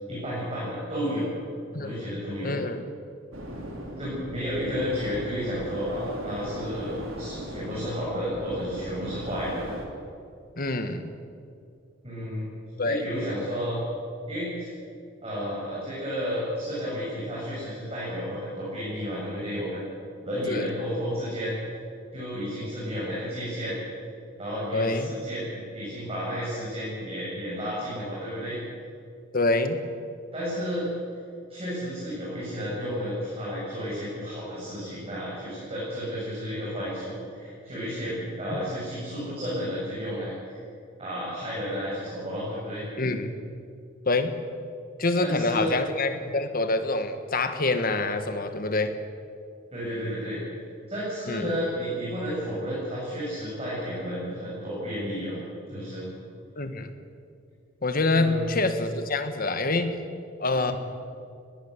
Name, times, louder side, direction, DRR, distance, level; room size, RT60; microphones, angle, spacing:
voice 1, 0.1-1.3 1.8-2.5 4.0-9.6 12.0-12.6 12.8-13.8 14.3-14.7 15.2-19.8 20.2-21.7 22.1-23.7 24.4-28.6 30.3-30.9 31.5-40.6 41.0-42.8 45.2-45.7 46.0-46.1 49.7-50.4 50.9-55.4 55.7-56.0 58.1-58.4 60.5-60.7, equal, 30° right, -8 dB, 7.9 m, -32 dB
voice 2, 2.4-2.8 10.6-11.1 12.8-13.0 20.4-20.7 24.7-25.1 29.3-29.8 38.5-38.6 43.0-43.3 44.1-44.4 45.0-48.9 51.3-51.5 56.6-56.9 57.8-60.0 60.4-60.7, left 2 dB, 45° left, 8 dB, 1.6 m, -26 dB
sound 1, 3.3-9.9, right 1 dB, 70° right, 3.5 m, -37 dB
21.5 x 17.0 x 8.3 m, 2.4 s
head